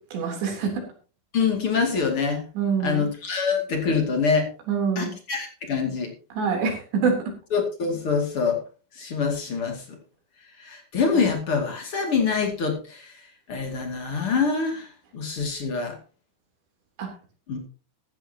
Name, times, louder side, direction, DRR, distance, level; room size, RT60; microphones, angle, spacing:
voice 1, 0.1-0.8 2.6-3.1 4.7-5.1 6.4-7.2 17.0-17.1, right 5 dB, 65° right, 2 dB, 5.6 m, -25 dB
voice 2, 1.3-2.4 2.8-4.5 5.0-6.1 7.5-8.6 9.0-9.8 10.6-13.1 13.5-14.9 15.1-16.0 17.5-17.6, left 5 dB, 35° left, 2 dB, 2.5 m, -25 dB
15.0 x 13.5 x 2.9 m, 0.35 s
omnidirectional pair, 5.5 m